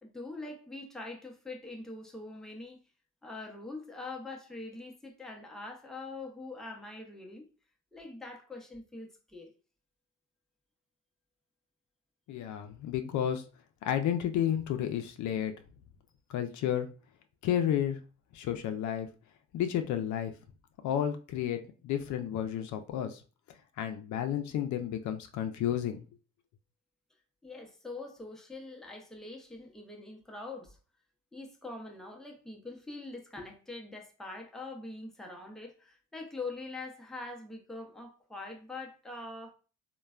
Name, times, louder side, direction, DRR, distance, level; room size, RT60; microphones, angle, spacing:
voice 1, 0.0-2.8 3.2-7.5 7.9-9.5 27.4-30.8 31.3-39.5, left 2 dB, ahead, 0.6 m, -43 dB
voice 2, 12.3-13.4 13.8-15.5 16.3-16.9 17.4-18.0 18.3-19.1 19.5-20.3 20.8-23.2 23.8-26.0, left 10 dB, 70° left, 0.5 m, -31 dB
3.1 x 2.2 x 2.3 m
cardioid pair, 90°, 30 cm